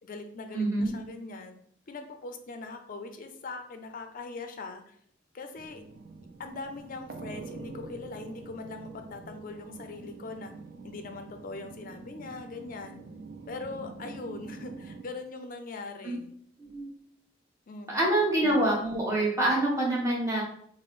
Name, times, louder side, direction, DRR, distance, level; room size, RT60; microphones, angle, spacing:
voice 1, 0.0-1.6 1.9-5.0 5.3-5.8 6.4-10.5 10.8-13.0 13.5-16.3 17.7-18.0, left 3 dB, 45° left, 6 dB, 0.4 m, -41 dB
voice 2, 0.5-0.9 16.0-16.2 16.6-16.9 17.9-20.4, right 1 dB, 15° right, -4 dB, 1.0 m, -26 dB
sound 1, 5.6-15.0, right 3 dB, 50° right, 0.4 m, -45 dB
3.6 x 2.0 x 4.1 m, 0.65 s
head